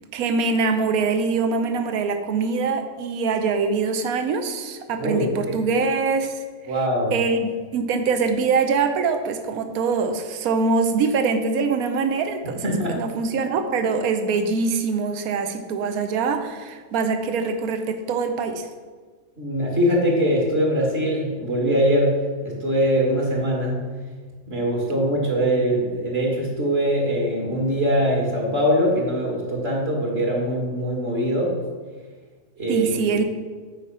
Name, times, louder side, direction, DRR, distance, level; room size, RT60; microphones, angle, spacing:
voice 1, 0.1-6.4 7.1-18.7 32.7-33.2, right 4 dB, 80° right, 7 dB, 1.2 m, -23 dB
voice 2, 5.0-5.6 6.7-7.2 12.6-13.0 19.4-23.8 24.5-31.6 32.6-32.9, equal, 45° right, -1 dB, 2.1 m, -22 dB
8.3 x 5.1 x 5.5 m, 1.5 s
omnidirectional pair, 1.5 m